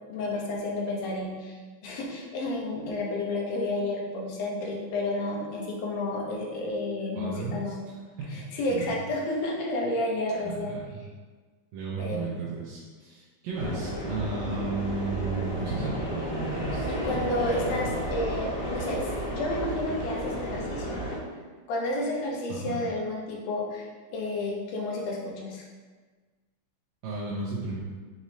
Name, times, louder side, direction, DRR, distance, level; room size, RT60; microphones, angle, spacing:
voice 1, 0.1-7.8 8.3-10.8 12.0-12.3 13.6-13.8 16.9-21.0 21.7-25.6, left 1 dB, 70° left, -2 dB, 1.8 m, -31 dB
voice 2, 7.2-7.7 8.2-8.4 8.7-9.0 10.4-11.0 11.7-18.2 22.5-22.8 27.0-27.8, right 4 dB, 75° right, -7 dB, 1.7 m, -34 dB
sound 1, 13.5-21.2, equal, 35° left, 1.0 m, -32 dB
6.1 x 3.0 x 2.7 m, 1.4 s
omnidirectional pair, 3.4 m